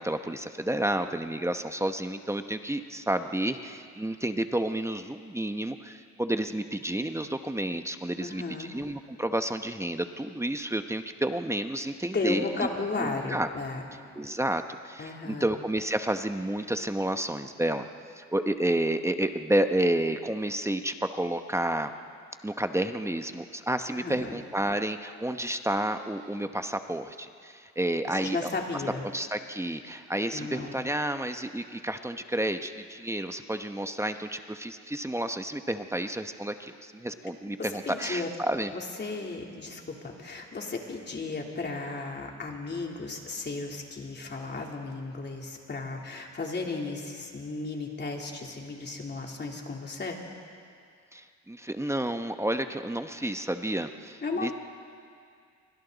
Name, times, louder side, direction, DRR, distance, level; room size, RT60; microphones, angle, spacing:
voice 1, 0.0-12.7 13.0-13.5 14.2-17.9 18.2-21.9 22.4-28.5 29.1-38.7 51.1-54.5, right 1 dB, 10° right, 7 dB, 1.0 m, -30 dB
voice 2, 8.2-8.7 12.1-13.8 15.0-15.5 23.9-24.4 28.1-29.1 30.3-30.8 37.6-38.3 38.7-50.2 54.2-54.5, left 3 dB, 35° left, 0 dB, 3.4 m, -34 dB
28.5 x 24.5 x 4.0 m, 2.3 s
cardioid pair, 90°, 30 cm